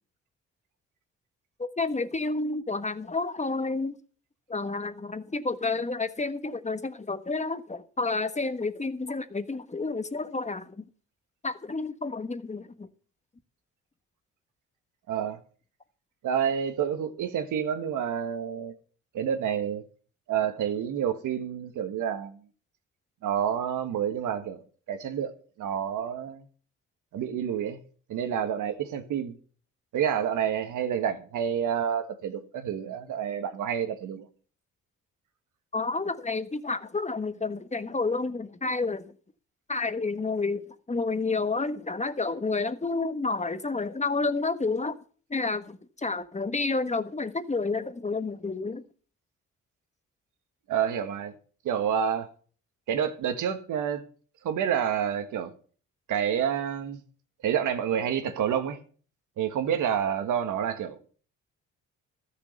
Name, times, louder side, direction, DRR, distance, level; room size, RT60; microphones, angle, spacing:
voice 1, 1.6-4.0 4.5-10.9 11.4-12.9 35.7-39.1 39.7-45.0 45.3-48.8, left 3 dB, 20° left, 1.4 m, -30 dB
voice 2, 15.1-15.4 16.2-18.7 19.1-19.8 20.3-22.4 23.2-24.6 24.9-26.4 27.1-27.8 28.1-29.4 29.9-34.2 50.7-51.3 51.6-52.3 52.9-54.0 54.4-55.5 56.1-57.0 57.4-58.8 59.4-61.1, right 8 dB, 80° right, 1.7 m, -28 dB
13.5 x 6.7 x 6.7 m
cardioid pair, 75°, 31 cm